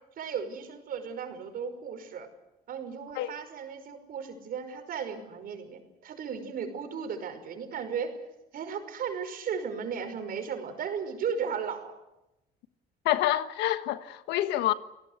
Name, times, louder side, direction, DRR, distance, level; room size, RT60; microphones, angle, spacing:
voice 1, 0.2-2.3 2.7-8.2 8.5-12.0, right 6 dB, 60° right, 5.5 m, -35 dB
voice 2, 13.0-14.7, left 14 dB, 90° left, 1.4 m, -27 dB
29.5 x 18.5 x 8.3 m
cardioid pair, 110°, 17 cm